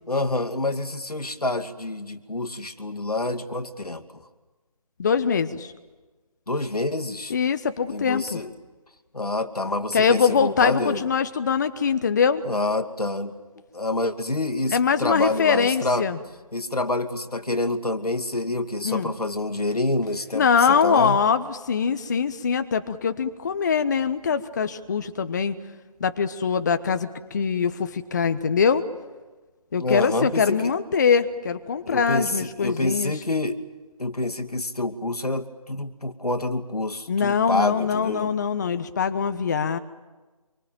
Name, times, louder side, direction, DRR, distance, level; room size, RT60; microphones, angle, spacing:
voice 1, 0.1-4.0 6.5-7.3 7.9-8.5 9.1-11.0 12.4-13.3 13.7-16.1 16.5-21.2 29.8-30.7 31.9-33.6 34.0-38.3, left 2 dB, 85° left, 8 dB, 2.5 m, -27 dB
voice 2, 5.0-5.7 7.3-8.4 9.9-12.4 14.7-16.2 18.8-19.1 20.3-25.5 26.0-28.8 29.7-33.1 37.1-39.8, left 6 dB, 30° left, 11 dB, 1.1 m, -23 dB
26.5 x 24.0 x 9.1 m, 1.2 s
figure-of-eight pair, 160°, 19 cm